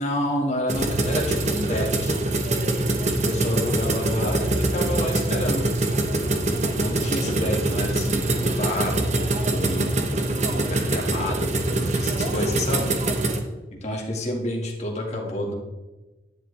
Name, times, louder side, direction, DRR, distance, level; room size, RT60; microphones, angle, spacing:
voice 1, 0.0-2.2 3.0-5.7 6.7-10.2 10.5-12.9 13.7-15.5, left 1 dB, 40° left, -1 dB, 1.9 m, -29 dB
sound 1, 0.7-13.4, right 2 dB, 40° right, 1.0 m, -24 dB
10.5 x 10.0 x 3.4 m, 1.1 s
head